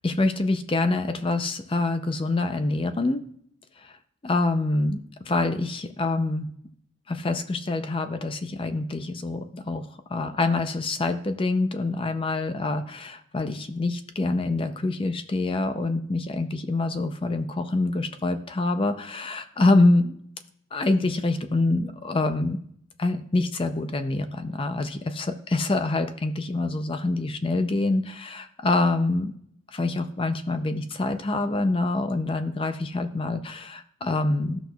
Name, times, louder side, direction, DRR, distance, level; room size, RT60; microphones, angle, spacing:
voice 1, 0.0-3.2 3.8-3.9 4.2-6.5 7.1-20.2 20.7-22.6 23.0-29.3 29.7-34.6, left 2 dB, 25° left, 9 dB, 0.4 m, -26 dB
13.5 x 6.0 x 2.3 m, 0.65 s
head